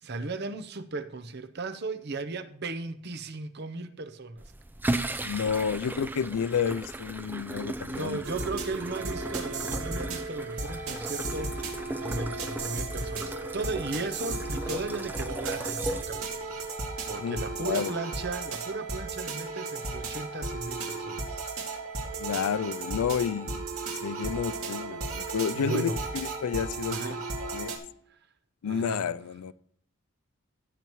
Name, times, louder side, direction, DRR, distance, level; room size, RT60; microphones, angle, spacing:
voice 1, 0.0-4.4 7.9-11.6 12.0-16.3 17.1-21.4 25.5-26.0 26.9-27.3 28.6-29.1, right 3 dB, 45° right, 0.7 m, -36 dB
sound 1, 4.4-16.7, right 1 dB, 10° right, 0.4 m, -37 dB
voice 2, 5.2-8.2 17.2-17.9 22.2-23.6 24.0-27.0 27.5-27.7 28.6-29.5, left 7 dB, 85° left, 0.4 m, -30 dB
sound 2, 8.2-27.8, right 3 dB, 75° right, 2.1 m, -35 dB
16.0 x 7.0 x 3.1 m
head